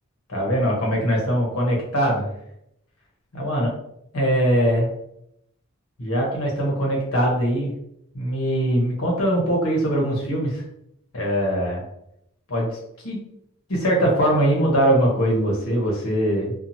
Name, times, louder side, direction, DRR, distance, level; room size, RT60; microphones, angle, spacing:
voice 1, 0.3-2.3 3.3-3.7 4.1-4.9 6.0-7.7 8.1-10.6 11.1-11.8 12.5-12.8 13.0-13.2 13.7-16.5, equal, 75° left, -2 dB, 1.0 m, -21 dB
2.8 x 2.3 x 2.7 m, 0.77 s
head